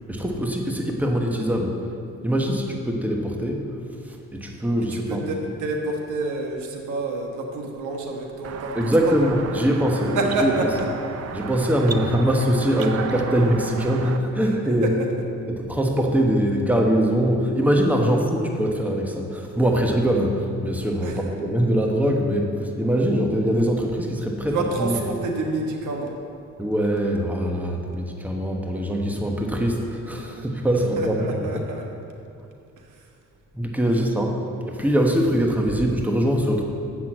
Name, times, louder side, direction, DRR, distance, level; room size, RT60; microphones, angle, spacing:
voice 1, 0.0-1.8 2.2-3.7 4.1-5.3 8.7-10.5 11.3-14.9 15.5-24.9 26.6-31.5 33.5-34.4 34.7-36.6, equal, 5° right, 1 dB, 1.2 m, -22 dB
voice 2, 4.9-9.4 10.1-10.7 12.2-12.3 14.8-14.9 21.0-21.2 24.5-26.2 30.8-31.8 32.8-32.9, right 3 dB, 80° right, 2 dB, 1.3 m, -28 dB
sound 1, 8.4-14.2, right 6 dB, 55° right, 0.7 m, -34 dB
7.8 x 6.3 x 7.7 m, 2.5 s
cardioid pair, 90°, 30 cm